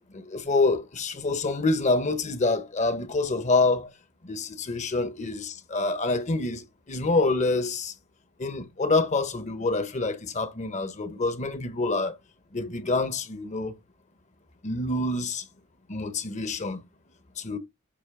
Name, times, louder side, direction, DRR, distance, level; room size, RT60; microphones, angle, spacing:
voice 1, 0.1-3.9 4.2-7.9 8.4-12.2 12.5-13.7 14.6-15.4 15.9-16.8 17.4-17.6, left 3 dB, 35° left, 0.8 m, -26 dB
8.5 x 2.9 x 5.8 m
head